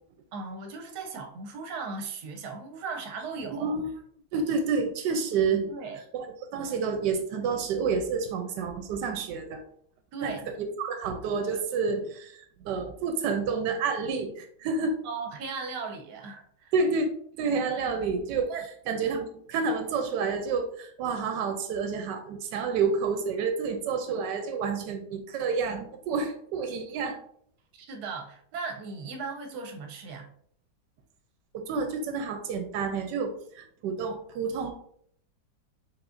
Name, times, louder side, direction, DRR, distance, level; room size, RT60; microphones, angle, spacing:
voice 1, 0.3-3.7 5.7-6.0 10.1-10.6 15.0-16.7 18.5-18.7 27.7-30.3, right 4 dB, 70° right, 3 dB, 1.2 m, -37 dB
voice 2, 4.3-5.7 6.1-6.3 6.5-9.6 10.2-15.0 16.7-17.1 17.4-18.5 18.9-27.2 31.5-34.7, right 5 dB, 90° right, 5 dB, 1.2 m, -29 dB
4.8 x 3.9 x 2.5 m, 0.64 s
omnidirectional pair, 1.8 m